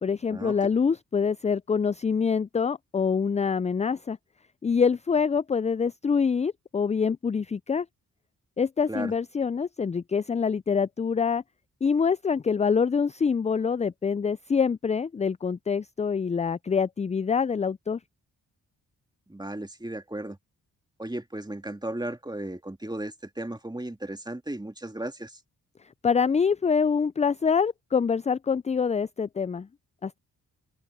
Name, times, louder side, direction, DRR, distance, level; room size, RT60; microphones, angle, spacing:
voice 1, 0.0-4.2 4.6-7.9 8.6-11.4 11.8-18.0 26.0-29.7 30.0-30.2, left 6 dB, 20° left, 0.4 m, -25 dB
voice 2, 19.3-20.4 21.0-25.4, right 1 dB, 10° right, 2.1 m, -35 dB
open air
supercardioid pair, 40°, 41 cm